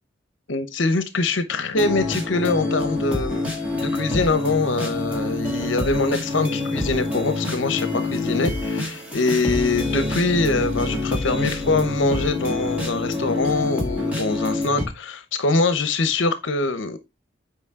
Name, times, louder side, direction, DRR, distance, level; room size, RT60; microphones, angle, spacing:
voice 1, 0.5-3.5 3.7-17.0, left 3 dB, 75° left, 0.9 m, -23 dB
sound 1, 1.7-14.8, left 2 dB, 5° right, 2.8 m, -26 dB
8.3 x 5.2 x 3.6 m
head